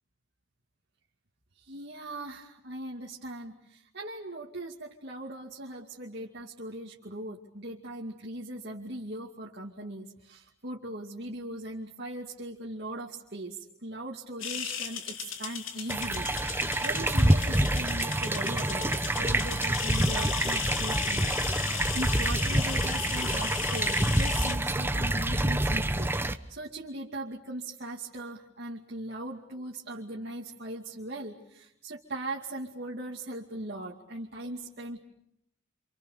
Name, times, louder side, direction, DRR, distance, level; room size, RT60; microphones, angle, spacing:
voice 1, 1.5-21.6 21.9-35.0, right 1 dB, 55° right, -2 dB, 2.5 m, -39 dB
sound 1, 14.4-24.5, left 8 dB, 85° left, 3.0 m, -36 dB
sound 2, 15.9-26.3, right 1 dB, 10° right, 1.0 m, -27 dB
28.5 x 27.5 x 6.7 m, 0.77 s
head